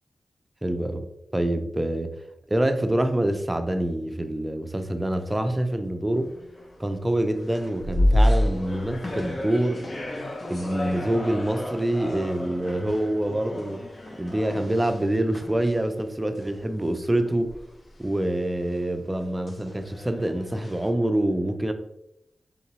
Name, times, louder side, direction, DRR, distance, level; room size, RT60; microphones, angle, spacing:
voice 1, 0.6-1.0 1.3-2.1 2.5-6.3 6.8-9.9 10.5-13.8 14.2-17.5 18.0-21.7, right 1 dB, 15° right, 7 dB, 0.4 m, -26 dB
sound 1, 6.1-6.9 7.4-16.1 16.4-16.6 17.3-18.0 18.5-20.9, left 1 dB, 45° left, 0.7 m, -29 dB
3.8 x 3.6 x 3.0 m, 0.84 s
wide cardioid pair, 80°, 0 cm